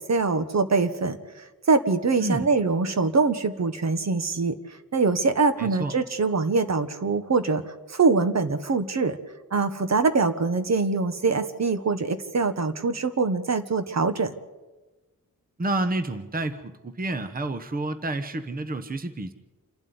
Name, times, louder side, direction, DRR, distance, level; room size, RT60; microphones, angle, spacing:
voice 1, 0.1-1.2 1.7-4.6 4.9-7.6 7.9-9.2 9.5-14.3, right 4 dB, 50° right, 10 dB, 1.4 m, -23 dB
voice 2, 5.6-5.9 15.6-19.3, right 2 dB, 25° right, 10 dB, 1.1 m, -29 dB
27.5 x 12.0 x 9.7 m, 1.2 s
wide cardioid pair, 100°, 33 cm